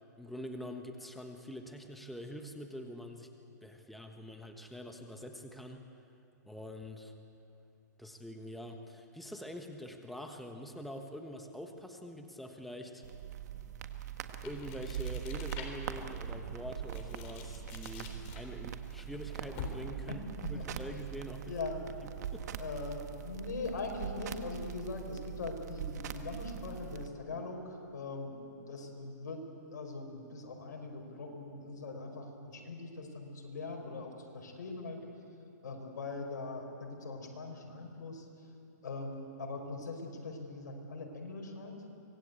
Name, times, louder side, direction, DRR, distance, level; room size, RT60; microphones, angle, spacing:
voice 1, 0.2-3.3 3.6-5.8 6.5-7.1 8.0-13.0 14.4-20.2 20.5-21.5 22.3-22.5, equal, ahead, 4 dB, 1.2 m, -45 dB
sound 1, 13.0-27.1, right 9 dB, 65° right, 1.6 m, -42 dB
sound 2, 14.4-16.0 16.5-20.1, left 5 dB, 35° left, 3.8 m, -47 dB
voice 2, 20.1-20.7 21.5-21.8 22.6-29.4 29.7-35.0 35.6-38.3 38.8-41.7, left 3 dB, 75° left, 3 dB, 5.3 m, -41 dB
25.0 x 20.0 x 8.3 m, 2.8 s
hypercardioid pair, 140°, 10 cm